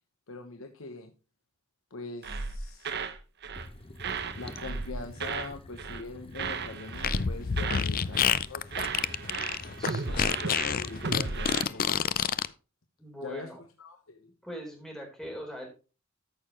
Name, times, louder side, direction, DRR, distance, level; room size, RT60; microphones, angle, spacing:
voice 1, 0.3-1.1 1.9-2.9 4.4-8.9 9.9-12.3 13.2-13.5 13.8-14.3, left 3 dB, 90° left, 5 dB, 1.1 m, -43 dB
sound 1, 2.2-3.2 3.4-3.7 4.0-5.5 5.8-6.1 6.3-7.9 8.1-8.4 8.7-11.7, right 4 dB, 55° right, 0.9 m, -35 dB
sound 2, 3.6-11.7, left 1 dB, 25° left, 0.9 m, -47 dB
Fart, 6.9-12.5, left 8 dB, 45° left, 0.5 m, -28 dB
voice 2, 9.8-10.4 13.0-13.6 14.4-15.7, equal, ahead, 0 dB, 4.1 m, -41 dB
13.5 x 6.7 x 3.0 m, 0.32 s
head